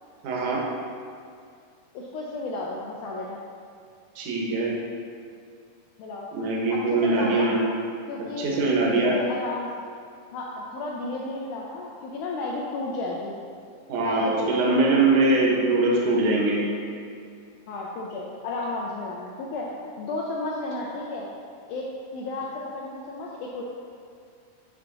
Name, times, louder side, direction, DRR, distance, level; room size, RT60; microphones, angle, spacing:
voice 1, 0.2-0.6 4.2-4.7 6.3-7.6 8.4-9.1 13.9-16.6, right 2 dB, 70° right, -3 dB, 2.1 m, -22 dB
voice 2, 1.9-3.4 6.0-6.3 6.7-7.6 8.1-9.7 10.3-13.4 14.0-15.0 17.7-21.3 21.7-21.9 22.1-23.6, left 2 dB, 80° left, -3 dB, 1.8 m, -33 dB
7.7 x 3.4 x 3.8 m, 2.3 s
omnidirectional pair, 4.0 m